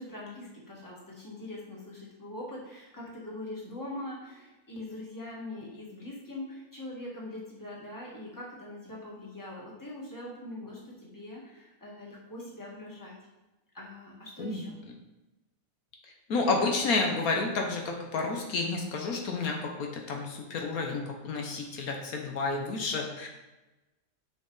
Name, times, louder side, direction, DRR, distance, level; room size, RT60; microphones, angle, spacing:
voice 1, 0.0-13.1 13.7-14.8, left 1 dB, 15° left, -4 dB, 1.7 m, -42 dB
voice 2, 16.3-23.3, left 3 dB, 75° left, 2 dB, 1.4 m, -30 dB
6.6 x 6.2 x 3.9 m, 1.0 s
omnidirectional pair, 1.5 m